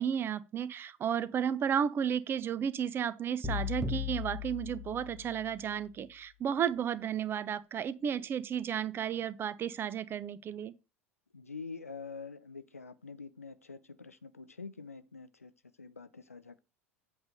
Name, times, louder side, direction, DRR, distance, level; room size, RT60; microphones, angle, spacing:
voice 1, 0.0-10.7, right 8 dB, 30° right, 0.6 m, -33 dB
sound 1, 3.4-5.6, left 6 dB, 5° right, 1.2 m, -37 dB
voice 2, 11.3-15.5 15.8-16.6, left 4 dB, 85° left, 0.6 m, -46 dB
8.1 x 3.3 x 6.5 m
figure-of-eight pair, 75°, 8 cm